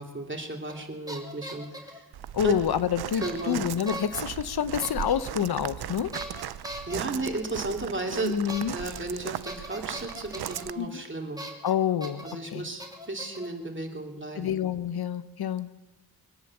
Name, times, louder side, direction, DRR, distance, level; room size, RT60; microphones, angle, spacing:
voice 1, 0.0-2.0 2.4-2.5 3.1-3.6 6.9-8.3 8.7-11.4 12.2-14.5, right 2 dB, 30° right, 1 dB, 2.8 m, -34 dB
sound 1, 0.7-2.0 3.2-3.5 3.9-4.2 4.8-5.1 6.1-7.0 8.5-8.6 8.9-9.0 9.5-10.6 11.4-11.7 12.0-12.3 12.8-13.5, right 1 dB, 10° right, 2.9 m, -39 dB
Walk footsteps, 2.1-10.7, right 11 dB, 90° right, 0.5 m, -38 dB
voice 2, 2.3-6.1 8.2-8.7 10.8-11.0 11.6-12.2 12.5-12.7 14.4-15.7, left 9 dB, 85° left, 14 dB, 0.7 m, -28 dB
23.0 x 8.7 x 7.1 m, 1.1 s
cardioid pair, 60°, 37 cm